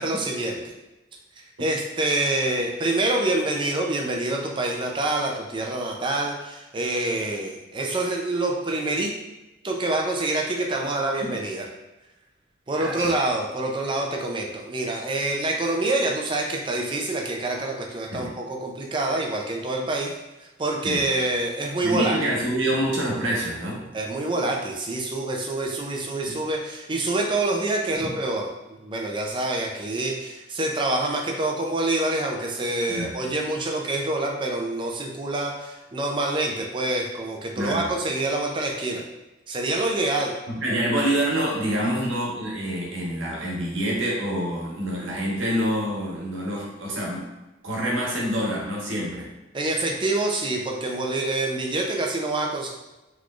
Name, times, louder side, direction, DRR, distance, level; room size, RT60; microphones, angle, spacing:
voice 1, 0.0-0.6 1.6-9.1 9.6-11.7 12.7-20.2 20.6-22.2 23.9-39.0 39.5-40.4 41.8-42.0 49.5-52.7, right 2 dB, 25° right, 1 dB, 0.4 m, -26 dB
voice 2, 12.8-13.1 18.1-18.3 20.8-21.0 21.8-23.8 26.3-26.4 28.0-28.1 32.9-33.1 37.6-37.9 40.5-47.3 47.6-49.3, right 1 dB, 80° right, -3 dB, 1.0 m, -26 dB
3.9 x 3.1 x 2.4 m, 1.0 s
head